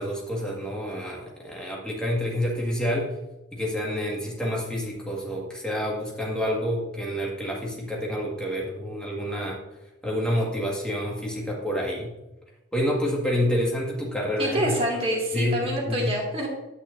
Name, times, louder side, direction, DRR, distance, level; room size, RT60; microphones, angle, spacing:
voice 1, 0.0-3.1 3.5-9.6 10.0-12.1 12.7-14.7 15.3-16.1, equal, 5° left, -3 dB, 1.8 m, -28 dB
voice 2, 14.4-16.5, right 1 dB, 30° right, -2 dB, 2.2 m, -26 dB
9.9 x 9.2 x 2.7 m, 1.0 s
head